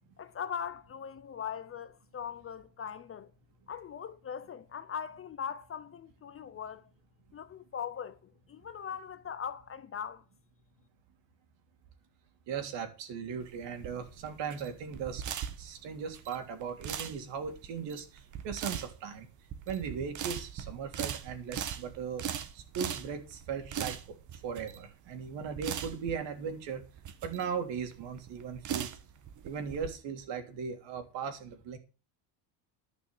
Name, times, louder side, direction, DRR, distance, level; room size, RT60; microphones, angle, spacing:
voice 1, 0.2-3.3 3.7-6.9 7.3-10.2, left 7 dB, 25° left, 0.7 m, -40 dB
voice 2, 12.5-15.2 15.6-19.3 19.7-22.3 22.5-24.0 24.3-26.8 27.2-28.9 29.4-31.8, right 6 dB, 60° right, 3.3 m, -38 dB
sound 1, 13.4-29.9, right 9 dB, 35° right, 1.3 m, -40 dB
12.0 x 6.3 x 7.8 m
cardioid pair, 135°, 50 cm